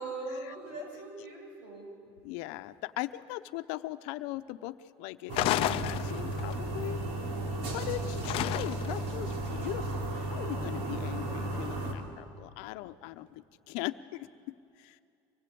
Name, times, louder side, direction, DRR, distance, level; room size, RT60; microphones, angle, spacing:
voice 1, 0.0-2.0 6.6-7.1, right 3 dB, 85° right, 1 dB, 7.5 m, -41 dB
voice 2, 2.2-7.0 7.7-15.0, left 16 dB, 80° left, 11 dB, 0.8 m, -40 dB
sound 1, 5.3-6.5 8.3-9.0, left 15 dB, 55° left, 0.5 m, -30 dB
sound 2, 5.3-11.9, right 2 dB, 65° right, 3.9 m, -34 dB
25.0 x 19.5 x 8.6 m, 2.5 s
cardioid pair, 145°, 12 cm